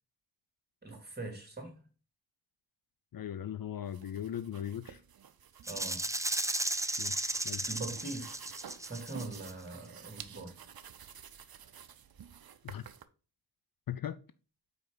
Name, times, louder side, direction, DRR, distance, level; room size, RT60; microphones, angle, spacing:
voice 1, 0.8-1.7 5.7-6.0 7.7-8.4 8.8-10.5, right 2 dB, 25° right, 2.4 m, -42 dB
voice 2, 3.1-5.0 7.0-7.6 12.6-12.8 13.9-14.2, left 10 dB, 55° left, 0.5 m, -39 dB
sound 1, 3.8-13.0, right 8 dB, 60° right, 0.6 m, -52 dB
Rattle (instrument), 5.7-9.5, right 2 dB, 10° right, 0.4 m, -34 dB
5.2 x 4.6 x 3.9 m
cardioid pair, 45°, 41 cm